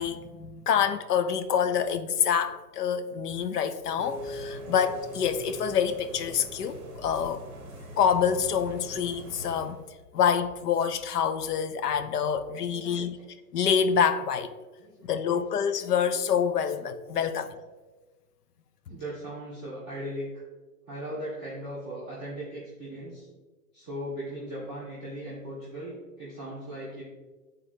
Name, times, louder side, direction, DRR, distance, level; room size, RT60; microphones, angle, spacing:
voice 1, 0.0-7.4 8.0-9.8 10.1-13.2 13.5-14.5 15.1-17.6, left 7 dB, 75° left, 0.7 m, -26 dB
sound 1, 4.0-9.9, equal, 10° right, 0.8 m, -42 dB
voice 2, 12.6-13.3 14.8-15.1 17.1-17.2 18.9-20.4 20.9-23.3 23.7-27.0, equal, 5° left, 0.4 m, -38 dB
9.9 x 4.0 x 2.7 m
hypercardioid pair, 145°, 48 cm